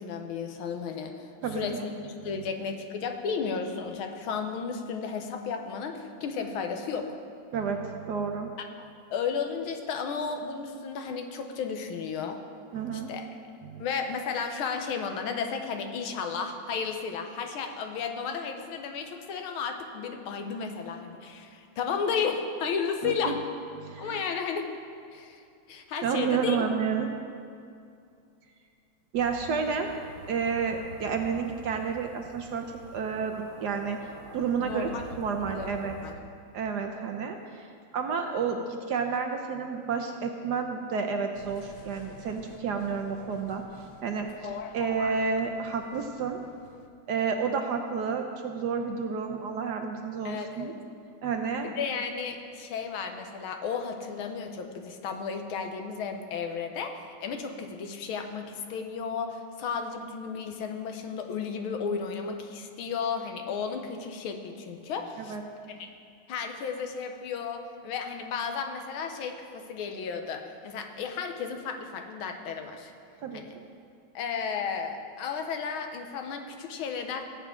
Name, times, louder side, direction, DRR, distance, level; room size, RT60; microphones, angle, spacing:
voice 1, 0.0-1.8 2.2-7.2 8.8-12.4 13.1-13.3 13.8-23.4 24.0-24.7 25.1-25.4 25.7-26.7 34.6-35.0 35.3-35.7 36.0-36.1 50.3-50.7 51.6-65.4 65.7-65.9 66.3-72.9 73.3-73.5 74.2-77.2, left 6 dB, 85° left, 5 dB, 1.7 m, -33 dB
voice 2, 1.4-1.8 7.5-8.6 12.7-13.1 13.6-13.8 23.0-23.4 23.8-24.2 26.0-27.1 29.1-29.9 30.3-34.0 34.3-34.9 35.2-35.9 36.5-37.7 37.9-43.6 44.0-46.4 47.1-50.7 51.2-51.7 65.2-65.4 73.2-73.4, right 6 dB, 65° right, 5 dB, 1.1 m, -30 dB
sound 1, 29.1-36.1, right 2 dB, 85° right, 1.9 m, -46 dB
sound 2, 41.3-46.9, left 7 dB, 70° left, 1.2 m, -45 dB
17.5 x 8.3 x 3.7 m, 2.4 s
omnidirectional pair, 2.2 m